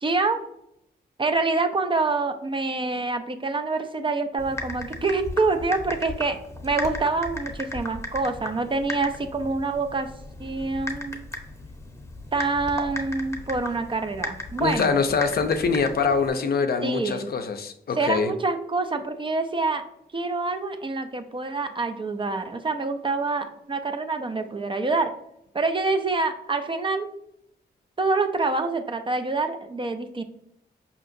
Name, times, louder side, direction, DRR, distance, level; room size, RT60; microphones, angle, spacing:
voice 1, 0.0-0.4 1.2-6.4 6.6-10.1 10.4-11.2 12.3-14.9 16.8-17.3 18.0-19.8 20.1-25.1 25.5-27.1 28.0-30.2, right 3 dB, 30° right, 7 dB, 0.4 m, -26 dB
Typing, 4.4-16.3, left 2 dB, 15° left, 0.8 m, -36 dB
voice 2, 14.6-18.3, left 5 dB, 60° left, 7 dB, 0.5 m, -24 dB
4.8 x 2.8 x 2.6 m, 0.79 s
cardioid pair, 55°, 18 cm